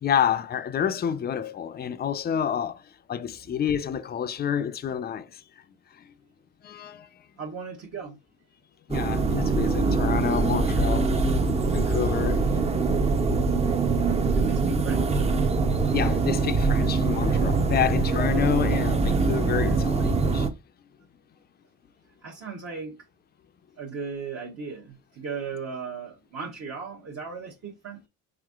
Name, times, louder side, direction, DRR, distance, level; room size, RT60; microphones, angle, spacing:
voice 1, 0.0-2.8 3.1-5.4 6.6-7.1 8.9-11.4 11.7-12.4 15.9-20.5, left 8 dB, 30° left, 0.5 m, -28 dB
voice 2, 7.4-8.2 14.3-15.3 22.2-23.0 23.8-28.1, right 5 dB, 45° right, 1.0 m, -37 dB
sound 1, 8.9-20.5, right 4 dB, 20° right, 0.6 m, -23 dB
4.9 x 3.5 x 2.4 m
supercardioid pair, 85°, 34 cm